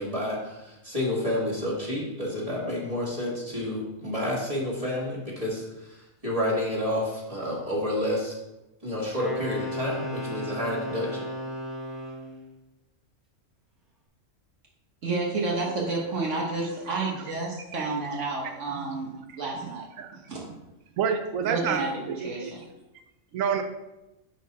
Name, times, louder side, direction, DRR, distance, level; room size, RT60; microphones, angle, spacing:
voice 1, 0.0-5.6 6.2-8.3 8.8-11.3, left 1 dB, 25° right, -5 dB, 2.1 m, -29 dB
Wind instrument woodwind instrument, 9.2-12.3, left 1 dB, ahead, 1.4 m, -34 dB
voice 2, 15.0-19.9 20.1-20.4 21.4-21.9 22.2-22.6, right 3 dB, 70° right, -2 dB, 1.5 m, -30 dB
voice 3, 21.0-21.8 22.1-22.5 23.3-23.6, right 7 dB, 90° right, 7 dB, 1.1 m, -28 dB
10.5 x 4.2 x 4.2 m, 0.98 s
omnidirectional pair, 1.3 m